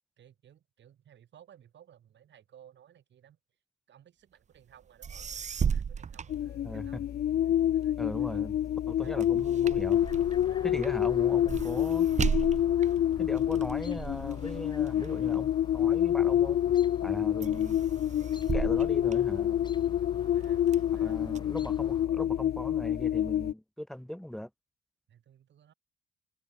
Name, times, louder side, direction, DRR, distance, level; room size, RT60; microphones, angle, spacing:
voice 1, 0.2-3.4 3.9-7.1 7.4-8.4 9.0-9.6 10.5-11.3 12.8-13.0 20.0-21.2 25.1-25.7, right 10 dB, 65° right, 5.5 m, -58 dB
sound 1, 4.7-4.8 5.0-7.1 7.6-16.2 16.7-17.1 17.4-19.9 20.4-21.4, right 7 dB, 35° right, 0.8 m, -36 dB
sound 2, 6.3-23.5, left 11 dB, 55° left, 0.6 m, -27 dB
voice 2, 6.6-7.0 8.0-8.5 8.9-10.0 10.6-12.1 13.2-16.6 17.0-17.8 18.5-19.6 21.0-24.5, equal, ahead, 0.5 m, -39 dB
Chirp tweet, 9.9-22.1, left 3 dB, 20° left, 7.4 m, -50 dB
cardioid pair, 90°, 20 cm